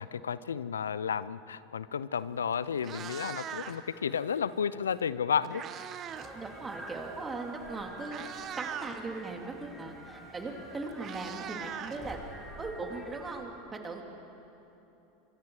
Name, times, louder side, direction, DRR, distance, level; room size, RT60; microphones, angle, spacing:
voice 1, 0.0-5.6, left 7 dB, 85° left, 17 dB, 0.5 m, -32 dB
Meow, 2.2-2.3 2.7-4.0 5.0-6.4 6.6-6.9 7.6-7.7 8.0-9.0 10.3-10.4 10.6-12.5, right 9 dB, 40° right, 1.2 m, -41 dB
sound 1, 6.1-13.4, right 1 dB, 5° right, 6.0 m, -47 dB
voice 2, 6.3-8.2 8.6-12.2 12.6-14.0, right 3 dB, 20° right, 2 dB, 3.0 m, -39 dB
25.5 x 23.5 x 4.9 m, 3.0 s
hypercardioid pair, 85°, 0 cm